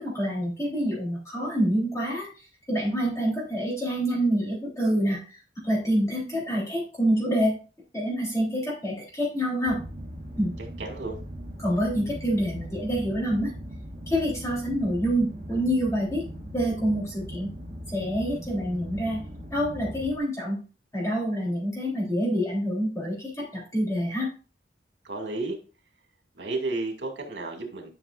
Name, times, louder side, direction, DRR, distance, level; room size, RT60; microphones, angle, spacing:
voice 1, 0.0-7.5 7.9-9.8 10.4-10.5 11.6-13.5 14.1-16.2 16.5-17.5 17.9-19.2 19.5-20.6 20.9-24.3, equal, 20° left, -4 dB, 3.6 m, -27 dB
sound 1, 9.7-20.2, equal, 40° right, 2.1 m, -39 dB
voice 2, 10.8-11.1 25.0-25.6 26.4-27.9, right 2 dB, 80° right, 3 dB, 2.4 m, -32 dB
11.5 x 5.9 x 2.5 m, 0.34 s
head